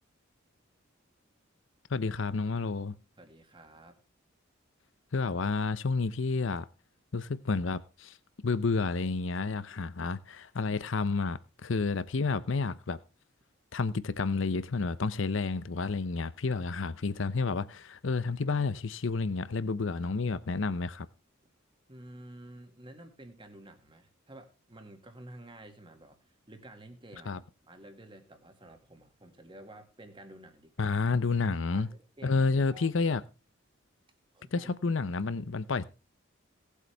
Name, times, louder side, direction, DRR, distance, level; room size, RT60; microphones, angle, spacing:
voice 1, 1.9-2.9 5.1-6.6 7.1-8.2 8.4-13.0 13.7-21.1 27.3-27.4 30.8-31.9 32.2-33.2 34.5-35.8, left 4 dB, 65° left, 0.7 m, -30 dB
voice 2, 3.2-4.0 21.9-31.0 31.7-32.9 34.3-34.7, right 1 dB, 25° right, 2.1 m, -51 dB
18.0 x 8.3 x 3.4 m
head